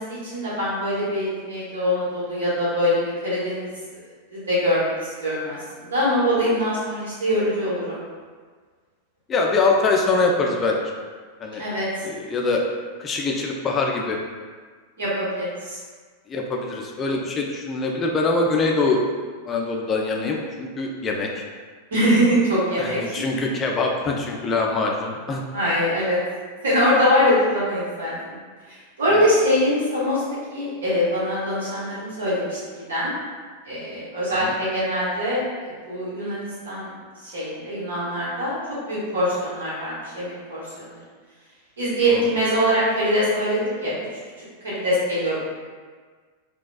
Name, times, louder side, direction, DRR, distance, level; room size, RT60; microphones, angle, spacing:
voice 1, 0.0-3.7 4.3-4.9 5.2-8.0 11.6-11.9 15.0-15.8 21.9-23.1 25.5-26.2 26.6-28.4 28.7-30.2 30.5-32.6 32.9-33.1 33.7-36.9 37.2-38.6 38.9-41.0 41.8-43.9 44.6-45.4, equal, 65° right, -8 dB, 1.3 m, -23 dB
voice 2, 9.3-10.8 11.4-11.6 12.0-12.6 13.0-14.2 16.3-19.0 19.5-21.4 22.8-25.4 34.4-34.5 42.1-42.3, left 3 dB, 25° left, 0 dB, 0.4 m, -23 dB
3.9 x 2.3 x 2.3 m, 1.5 s
figure-of-eight pair, 90°, 0 cm